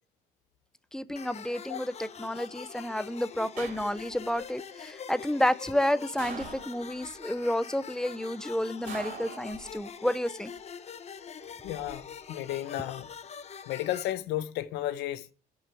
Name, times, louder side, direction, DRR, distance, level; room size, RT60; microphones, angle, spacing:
voice 1, 0.9-10.5, left 1 dB, 5° left, 0.6 m, -30 dB
sound 1, 1.2-14.1, left 7 dB, 40° left, 0.9 m, -44 dB
sound 2, 3.6-4.3 6.2-7.1 8.9-10.0 11.4-11.9, right 5 dB, 55° right, 3.6 m, -43 dB
voice 2, 11.6-13.1 13.7-15.3, left 13 dB, 90° left, 0.8 m, -33 dB
8.9 x 6.3 x 8.3 m
cardioid pair, 110°, 17 cm